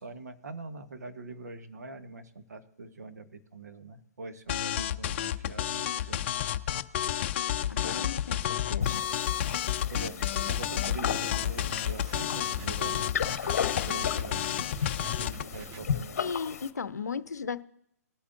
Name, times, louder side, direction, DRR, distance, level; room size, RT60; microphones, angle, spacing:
voice 1, 0.0-6.3 9.9-14.5 15.0-16.2, right 3 dB, 80° right, 8 dB, 1.2 m, -44 dB
sound 1, 4.5-15.4, left 11 dB, 45° left, 0.5 m, -30 dB
voice 2, 7.7-9.0 16.2-17.6, left 5 dB, 85° left, 15 dB, 0.6 m, -36 dB
sound 2, 8.8-16.7, left 7 dB, 60° left, 0.9 m, -35 dB
sound 3, 10.0-15.9, right 6 dB, 25° right, 0.5 m, -47 dB
20.0 x 8.6 x 2.6 m, 0.76 s
hypercardioid pair, 140°, 9 cm